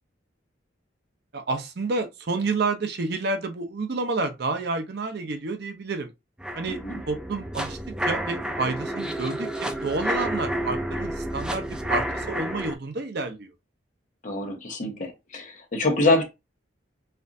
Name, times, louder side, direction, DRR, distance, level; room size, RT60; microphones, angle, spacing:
voice 1, 1.3-6.1 6.5-6.8 7.1-7.8 8.1-13.5, right 3 dB, 55° right, 0.6 m, -29 dB
sound 1, 6.4-12.7, right 1 dB, 5° right, 0.3 m, -30 dB
voice 2, 6.7-7.0 14.2-16.2, left 2 dB, 40° left, 1.1 m, -25 dB
4.3 x 2.5 x 2.6 m
head